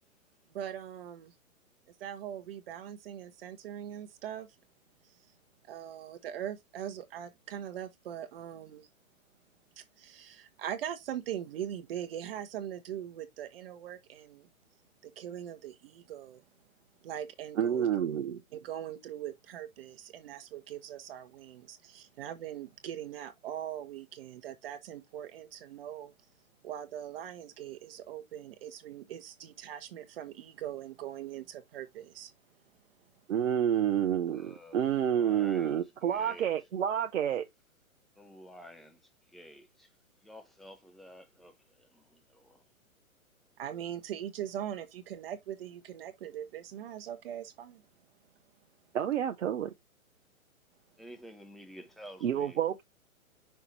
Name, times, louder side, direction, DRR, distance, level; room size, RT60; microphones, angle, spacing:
voice 1, 0.5-1.3 2.0-4.5 5.7-8.9 9.8-14.5 15.0-16.4 17.0-17.9 18.5-26.1 26.6-32.3 43.6-47.8, right 10 dB, 40° right, 1.2 m, -41 dB
voice 2, 17.6-18.4 33.3-37.4 48.9-49.7 52.2-52.9, right 9 dB, 55° right, 0.8 m, -29 dB
voice 3, 34.3-36.5 38.1-39.9 40.2-42.6 51.0-52.6, equal, ahead, 0.7 m, -51 dB
5.9 x 2.9 x 5.5 m
figure-of-eight pair, 125°, 42 cm